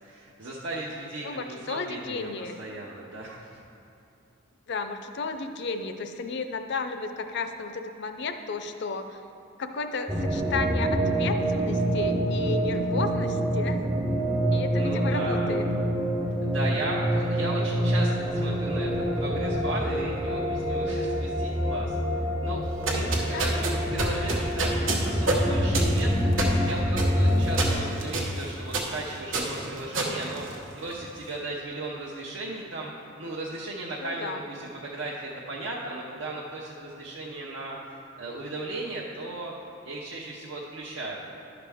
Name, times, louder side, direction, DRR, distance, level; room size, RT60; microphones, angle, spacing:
voice 1, 0.0-3.5 14.8-15.5 16.4-22.6 22.9-24.7 25.0-26.1 26.4-37.7 38.2-39.5 39.8-41.2, right 2 dB, 75° right, -5 dB, 0.8 m, -36 dB
voice 2, 1.2-2.6 4.7-9.2 9.6-13.8 14.5-15.6 23.3-23.6 34.0-34.4, left 4 dB, 60° left, 8 dB, 0.5 m, -33 dB
sound 1, 10.1-27.8, equal, 15° right, 0.5 m, -26 dB
sound 2, 22.7-31.1, right 2 dB, 90° right, 1.1 m, -30 dB
11.0 x 5.9 x 3.5 m, 2.7 s
head